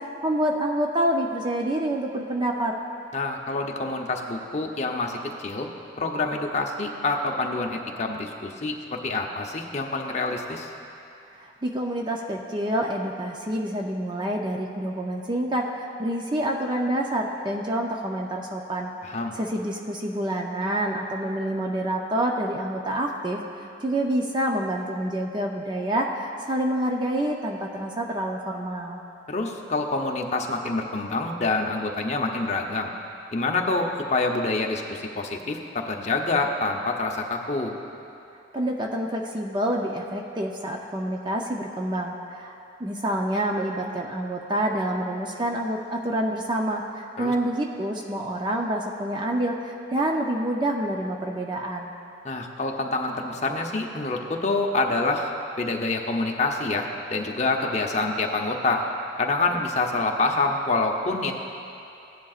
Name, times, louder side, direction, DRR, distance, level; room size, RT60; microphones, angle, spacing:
voice 1, 0.0-2.8 11.3-18.9 19.3-23.4 23.8-29.0 38.5-51.9, right 1 dB, 25° right, 1 dB, 0.5 m, -27 dB
voice 2, 3.1-5.7 6.0-10.7 19.0-19.4 29.3-32.9 33.3-37.7 47.2-47.3 52.2-58.8 59.2-61.3, left 3 dB, 35° left, 2 dB, 0.7 m, -27 dB
16.0 x 10.5 x 2.4 m, 2.7 s
head